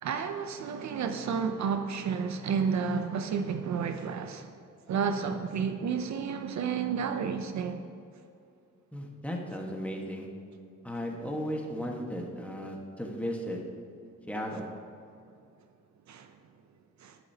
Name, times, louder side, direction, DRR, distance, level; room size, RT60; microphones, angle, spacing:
voice 1, 0.0-4.5 4.9-7.8 16.1-16.3 17.0-17.2, right 6 dB, 65° right, 0.6 m, -31 dB
voice 2, 8.9-10.3 10.8-13.6 14.3-14.7, equal, 5° left, 1.4 m, -35 dB
11.0 x 10.5 x 2.9 m
cardioid pair, 105°, 31 cm